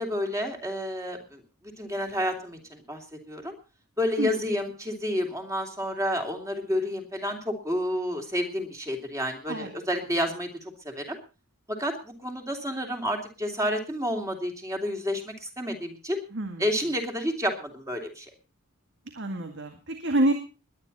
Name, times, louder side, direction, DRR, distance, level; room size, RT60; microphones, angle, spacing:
voice 1, 0.0-3.6 4.0-11.2 11.7-16.2 16.6-18.3, equal, 15° right, 3 dB, 3.0 m, -30 dB
voice 2, 16.3-16.6 19.1-20.3, right 1 dB, 55° right, 5 dB, 2.0 m, -27 dB
21.0 x 10.5 x 4.2 m, 0.33 s
head